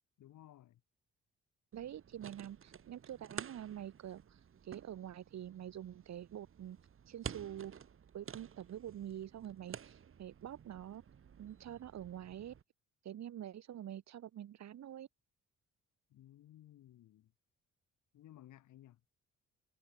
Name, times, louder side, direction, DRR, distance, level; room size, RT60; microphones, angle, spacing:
voice 1, 0.2-0.8 16.1-17.3 18.1-19.1, left 13 dB, 75° left, 3.7 m, -58 dB
sound 1, 1.7-12.6, right 8 dB, 45° right, 1.7 m, -52 dB
voice 2, 1.7-6.8 7.1-7.7 8.1-11.0 11.4-12.5 13.0-15.1, right 11 dB, 65° right, 2.0 m, -46 dB
cardioid pair, 90°, 30 cm